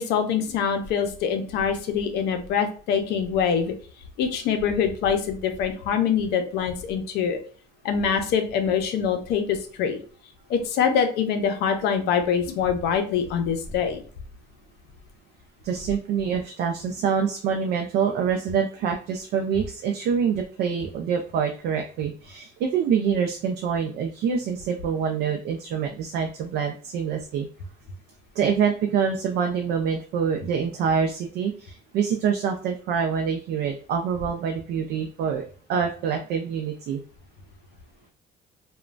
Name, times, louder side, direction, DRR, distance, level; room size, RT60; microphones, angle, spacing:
voice 1, 0.0-3.7 4.2-7.4 7.8-10.0 10.5-14.0, left 7 dB, 80° left, 6 dB, 0.5 m, -24 dB
voice 2, 15.6-27.5 28.4-37.0, right 7 dB, 75° right, 3 dB, 0.4 m, -26 dB
3.0 x 2.1 x 2.4 m, 0.41 s
cardioid pair, 110°, 17 cm